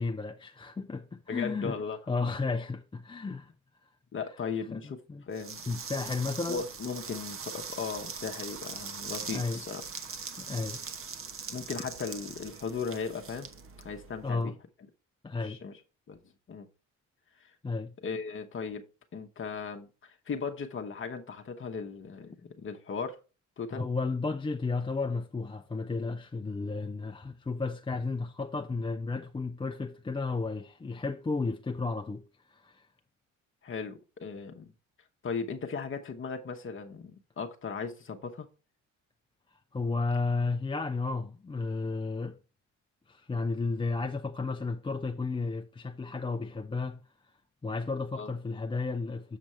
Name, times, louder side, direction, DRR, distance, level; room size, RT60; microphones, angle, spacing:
voice 1, 0.0-1.8 2.1-3.5 4.7-5.2 5.7-6.6 9.3-9.6 10.4-10.8 14.2-14.6 15.2-15.6 17.6-17.9 23.7-32.2 32.5-32.9 39.7-42.3 43.1-47.0 47.6-49.4, left 3 dB, 15° left, 0.5 m, -33 dB
voice 2, 1.3-2.0 4.1-5.6 6.5-9.8 11.5-13.5 13.8-14.5 15.4-15.7 16.1-16.2 16.5-16.7 17.4-17.5 18.0-23.2 23.6-23.8 33.6-34.7 35.2-38.5 48.1-48.3, left 5 dB, 45° left, 1.0 m, -37 dB
sound 1, 5.3-14.3, right 5 dB, 45° right, 1.0 m, -41 dB
7.5 x 5.1 x 4.3 m
cardioid pair, 90°, 30 cm